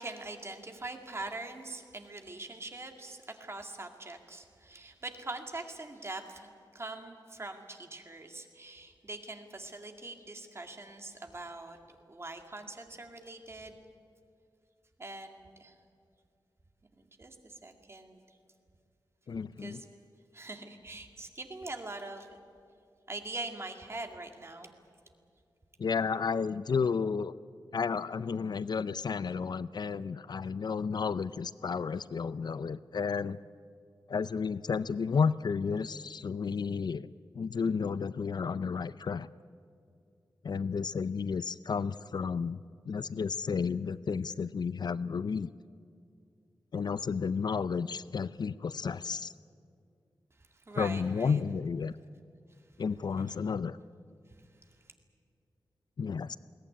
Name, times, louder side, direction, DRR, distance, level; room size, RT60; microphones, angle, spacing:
voice 1, 0.0-13.8 15.0-15.7 17.0-18.2 19.6-19.9 20.3-22.3 23.1-24.7 50.5-51.4 53.2-53.4 54.4-54.5, right 2 dB, 30° right, 4 dB, 2.2 m, -43 dB
voice 2, 19.3-19.8 25.8-27.3 27.7-33.4 34.1-37.1 37.4-39.3 40.4-42.6 42.9-45.5 46.7-49.3 50.8-51.9 52.8-53.8 56.0-56.4, left 5 dB, 60° left, 16 dB, 0.5 m, -32 dB
22.0 x 17.5 x 9.9 m, 2.4 s
wide cardioid pair, 140°, 8 cm